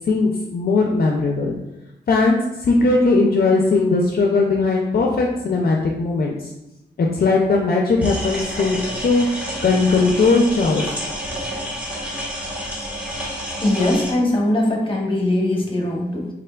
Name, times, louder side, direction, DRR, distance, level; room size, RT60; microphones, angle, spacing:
voice 1, 0.1-1.6 2.1-6.5 7.0-11.0, left 3 dB, 55° left, 0 dB, 0.4 m, -19 dB
sound 1, 8.0-14.1, equal, 5° right, 1.0 m, -29 dB
voice 2, 13.6-16.3, left 1 dB, 30° left, 0 dB, 0.8 m, -20 dB
3.6 x 3.3 x 2.2 m, 0.94 s
wide cardioid pair, 75°, 19 cm